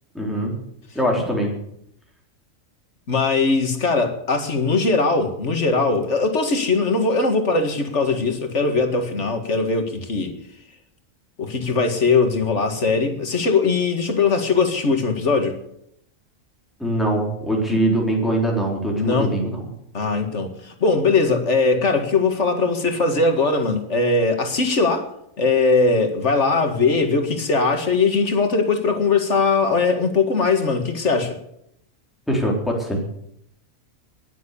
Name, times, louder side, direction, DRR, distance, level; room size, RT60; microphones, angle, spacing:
voice 1, 0.1-0.6 0.9-1.5 16.8-19.7 32.3-33.0, right 1 dB, ahead, -2 dB, 4.0 m, -22 dB
voice 2, 3.1-10.3 11.4-15.6 17.7-17.8 19.0-19.4 19.9-25.1 25.4-31.4, left 4 dB, 60° left, 6 dB, 2.2 m, -20 dB
20.0 x 7.6 x 8.4 m, 0.75 s
omnidirectional pair, 1.4 m